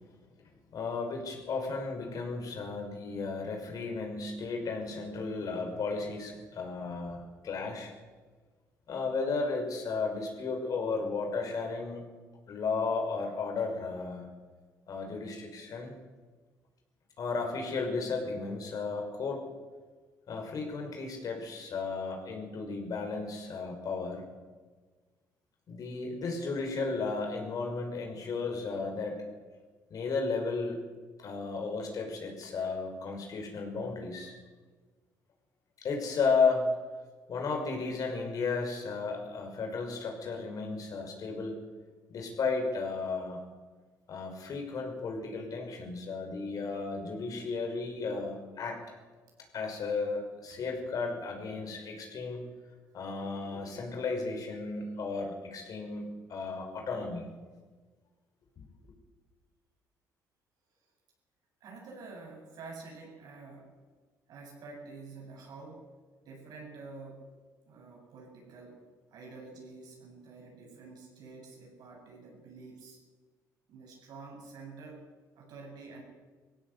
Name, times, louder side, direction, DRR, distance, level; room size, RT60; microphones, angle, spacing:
voice 1, 0.7-7.9 8.9-12.1 12.5-14.3 14.9-15.9 17.2-19.4 20.3-24.2 25.7-29.2 29.9-30.8 31.2-34.3 35.8-36.7 37.3-41.6 42.1-43.4 44.1-48.8 49.5-52.4 52.9-57.3 58.6-58.7, left 4 dB, 60° left, 2 dB, 5.7 m, -34 dB
voice 2, 61.6-63.8 64.3-65.9 66.2-67.3 67.7-73.0 73.7-76.0, right 3 dB, 70° right, 0 dB, 8.0 m, -48 dB
20.0 x 16.0 x 8.2 m, 1.4 s
supercardioid pair, 70°, 7 cm